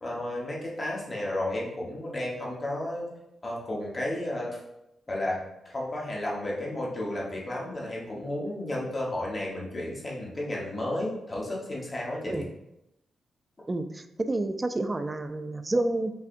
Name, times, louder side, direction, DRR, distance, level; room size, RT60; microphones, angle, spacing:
voice 1, 0.0-3.1 3.4-4.6 5.1-12.5, left 1 dB, 25° left, -4 dB, 1.1 m, -32 dB
voice 2, 13.7-16.1, right 2 dB, 20° right, 8 dB, 0.3 m, -29 dB
5.5 x 3.3 x 2.6 m, 0.86 s
wide cardioid pair, 125°, 0 cm